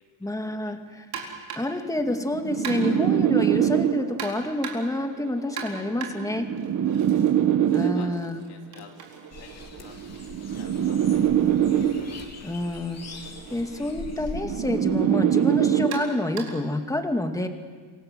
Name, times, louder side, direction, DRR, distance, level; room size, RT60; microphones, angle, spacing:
voice 1, 0.2-1.1 1.6-6.5 7.7-8.4 12.4-13.0 13.5-17.5, left 1 dB, 10° left, 5 dB, 2.3 m, -28 dB
sound 1, 1.1-1.8 2.6-3.1 4.2-5.0 5.6-7.3 7.6-11.5 12.6-12.8 13.2-13.3 14.3-14.4 15.9-16.7, right 6 dB, 70° right, 4.3 m, -39 dB
sound 2, 2.0-4.4 5.4-8.4 9.4-12.4 13.4-16.4, right 10 dB, 50° right, 1.3 m, -24 dB
voice 2, 6.6-7.1 7.7-8.1 8.4-8.9 9.3-10.0 10.3-11.8 12.3-12.5 13.2-13.4 15.3-15.4, left 8 dB, 85° left, 2 dB, 3.1 m, -51 dB
sound 3, 9.3-14.4, left 5 dB, 40° left, 3.1 m, -42 dB
26.5 x 18.0 x 7.7 m, 1.5 s
cardioid pair, 105°, 38 cm